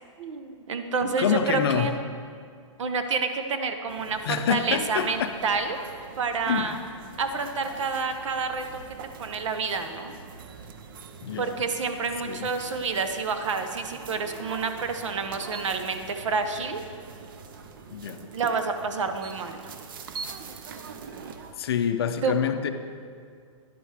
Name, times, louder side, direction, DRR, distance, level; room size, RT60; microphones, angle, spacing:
voice 1, 0.2-1.9 2.8-5.8 6.2-6.8 7.2-8.6 9.2-10.1 11.4-16.8 18.3-19.7 22.2-22.3, right 4 dB, 70° right, 7 dB, 0.9 m, -28 dB
voice 2, 1.0-1.9 4.2-5.3 6.5-6.8 11.2-11.6 12.2-12.5 17.9-18.3 21.6-22.7, left 8 dB, 50° left, 9 dB, 0.5 m, -27 dB
sound 1, 3.9-21.5, right 5 dB, 40° right, 0.5 m, -44 dB
10.5 x 7.7 x 3.3 m, 2.2 s
hypercardioid pair, 165°, 17 cm